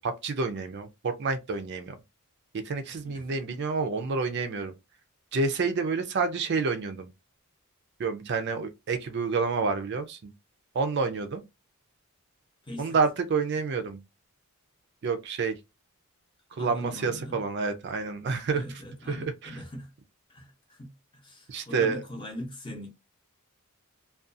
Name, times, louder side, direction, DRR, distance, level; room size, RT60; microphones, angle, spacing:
voice 1, 0.0-2.0 2.5-4.7 5.3-7.1 8.0-10.3 10.7-11.4 12.8-14.0 15.0-15.6 16.5-18.8 19.1-19.6 21.5-22.0, right 4 dB, 50° right, 0.4 m, -29 dB
voice 2, 3.0-3.4 12.6-13.0 16.6-17.4 18.5-19.9 20.3-22.9, left 1 dB, 20° left, 0.7 m, -41 dB
2.4 x 2.3 x 2.5 m
head